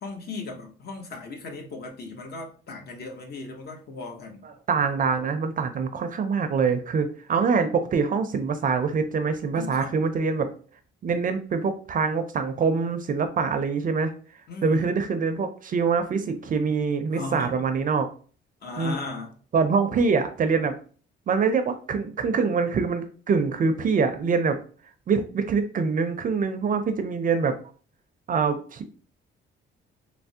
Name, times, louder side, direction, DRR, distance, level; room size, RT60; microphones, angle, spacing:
voice 1, 0.0-4.4 9.5-10.0 14.5-15.0 17.1-17.6 18.6-19.3, left 3 dB, 55° left, 0.8 m, -37 dB
voice 2, 4.4-10.5 11.0-14.1 14.6-18.1 18.8-19.0 19.5-20.7 21.3-24.6 25.1-27.6 28.3-28.8, right 5 dB, 45° right, 0.5 m, -24 dB
3.3 x 2.0 x 2.7 m
cardioid pair, 90°, 20 cm